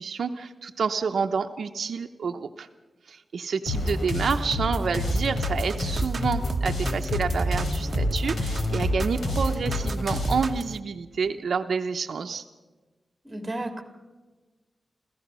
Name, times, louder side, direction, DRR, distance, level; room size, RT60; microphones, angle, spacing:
voice 1, 0.0-2.7 3.1-12.4, right 5 dB, 80° right, 6 dB, 0.7 m, -29 dB
sound 1, 3.7-10.5, left 2 dB, 80° left, 4.1 m, -28 dB
sound 2, 5.1-10.7, right 4 dB, 45° right, 0.9 m, -30 dB
voice 2, 13.2-13.8, right 1 dB, 20° right, 5 dB, 2.3 m, -32 dB
29.0 x 15.0 x 6.2 m, 1.3 s
wide cardioid pair, 125°, 0 cm